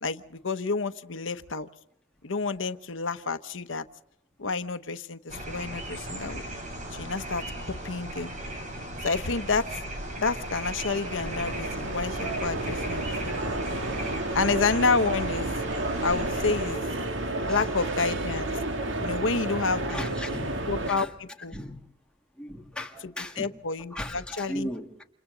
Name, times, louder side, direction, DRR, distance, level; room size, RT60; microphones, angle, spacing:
voice 1, 0.0-1.7 2.2-3.8 4.4-6.4 6.9-8.3 9.0-9.8 10.2-13.4 14.3-15.5 16.0-16.8 17.5-18.5 19.0-20.1 20.7-21.1 21.4-21.5 23.2-24.7, left 4 dB, 90° left, 10 dB, 0.9 m, -29 dB
sound 1, 5.3-16.8, right 1 dB, 40° right, 5.7 m, -37 dB
sound 2, 10.0-20.9, right 2 dB, 80° right, 1.9 m, -31 dB
voice 2, 17.3-17.7 19.1-19.2 19.8-21.1 21.5-21.9 22.4-23.6 23.9-25.0, left 1 dB, 5° left, 1 dB, 2.0 m, -38 dB
29.0 x 28.0 x 3.9 m, 0.70 s
head